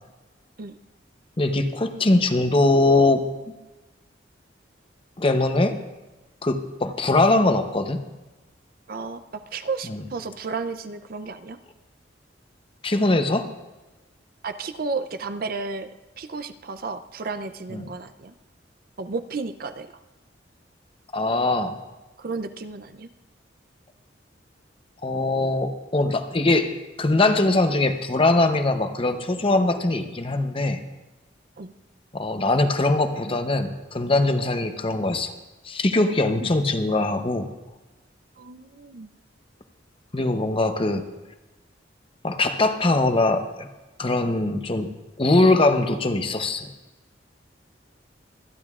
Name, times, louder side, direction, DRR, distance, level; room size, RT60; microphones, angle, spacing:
voice 1, 1.4-3.2 5.2-5.8 6.4-8.0 12.8-13.5 17.7-17.8 21.1-21.8 25.0-26.7 27.0-30.8 32.1-35.3 35.6-37.5 40.1-41.0 42.2-43.7 44.0-44.9 45.2-46.7, left 2 dB, 30° left, 7 dB, 0.8 m, -21 dB
voice 2, 8.9-11.6 14.4-15.9 16.2-18.3 19.0-20.0 22.2-23.1 31.6-31.7 38.4-39.1, right 4 dB, 50° right, 10 dB, 0.5 m, -33 dB
24.5 x 10.0 x 2.4 m, 1.1 s
head